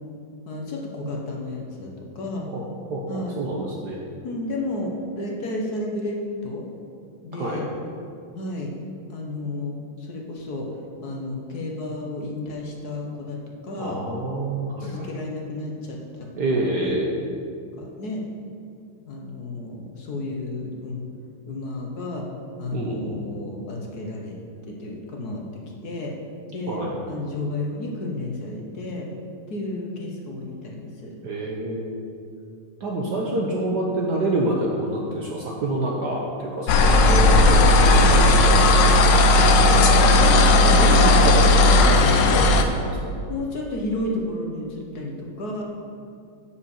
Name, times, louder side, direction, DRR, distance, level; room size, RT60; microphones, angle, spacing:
voice 1, 0.4-2.5 3.1-3.6 4.2-6.2 6.4-6.7 7.2-7.7 8.3-8.7 9.1-14.0 14.8-17.0 17.8-18.2 19.1-21.0 21.5-22.2 22.6-24.4 24.7-25.4 25.8-26.1 26.5-26.8 27.1-29.1 29.5-31.1 37.1-37.2 40.1-41.1 43.3-45.6, left 2 dB, 50° left, -1 dB, 1.5 m, -32 dB
voice 2, 2.9-4.0 7.4-7.6 13.8-15.1 16.4-17.1 22.7-23.2 26.7-27.0 31.2-32.0 32.8-41.0 41.2-43.1, right 1 dB, 60° right, -2 dB, 1.3 m, -27 dB
sound 1, 36.7-42.6, left 2 dB, 65° left, 1.2 m, -15 dB
7.7 x 6.7 x 7.2 m, 2.4 s
omnidirectional pair, 2.4 m